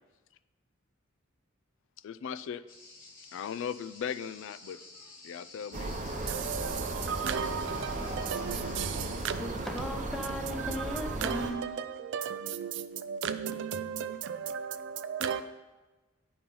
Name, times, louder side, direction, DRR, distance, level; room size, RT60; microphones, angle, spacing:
voice 1, 2.0-2.6 3.3-4.8 5.2-5.9, left 7 dB, 65° left, 0.3 m, -37 dB
sound 1, 2.7-9.3, left 3 dB, 40° left, 1.5 m, -52 dB
sound 2, 5.7-11.5, right 2 dB, 35° right, 0.8 m, -36 dB
voice 2, 6.3-9.5 10.8-10.9 11.2-15.4, right 7 dB, 60° right, 0.4 m, -35 dB
voice 3, 9.4-11.7, right 1 dB, ahead, 0.8 m, -37 dB
9.3 x 4.4 x 5.4 m
head